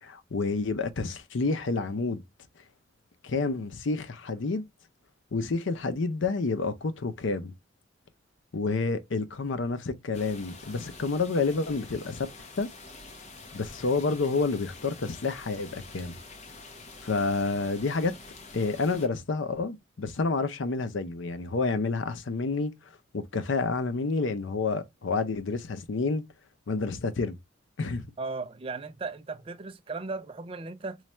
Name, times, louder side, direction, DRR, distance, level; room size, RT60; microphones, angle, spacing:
voice 1, 0.0-2.2 3.2-4.6 5.3-7.5 8.5-12.3 12.6-12.7 13.5-16.2 17.0-18.1 18.5-22.7 23.1-26.2 26.7-27.4 27.8-28.1, left 3 dB, 80° left, 0.6 m, -29 dB
sound 1, 10.1-19.1, left 3 dB, 35° left, 0.8 m, -47 dB
voice 2, 28.2-31.0, right 3 dB, 30° right, 0.4 m, -36 dB
3.1 x 2.3 x 4.2 m
head